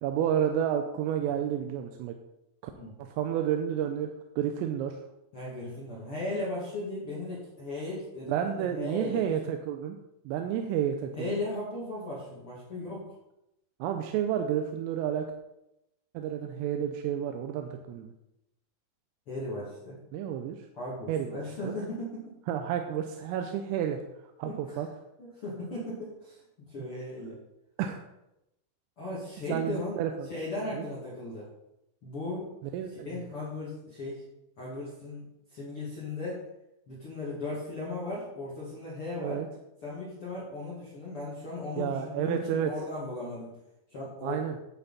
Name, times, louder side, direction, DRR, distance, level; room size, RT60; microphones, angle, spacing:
voice 1, 0.0-2.2 2.6-2.7 3.0-5.0 8.3-10.0 10.3-11.4 13.8-15.3 16.1-18.1 20.1-20.7 21.1-21.4 21.6-21.7 22.5-24.0 24.4-24.9 27.8-28.0 29.5-30.3 30.7-30.9 32.7-33.2 39.2-39.5 41.8-42.7 44.2-44.6, right 9 dB, 90° right, 5 dB, 3.4 m, -30 dB
voice 2, 5.3-9.3 11.2-13.2 19.3-20.0 20.7-22.3 24.4-24.8 25.2-27.4 29.0-30.0 30.3-31.5 32.0-32.5 33.0-34.2 34.6-35.2 35.5-36.5 36.9-39.4 39.8-43.5 43.9-44.5, left 2 dB, 40° left, -6 dB, 2.1 m, -37 dB
11.5 x 8.8 x 4.1 m, 0.86 s
omnidirectional pair, 5.8 m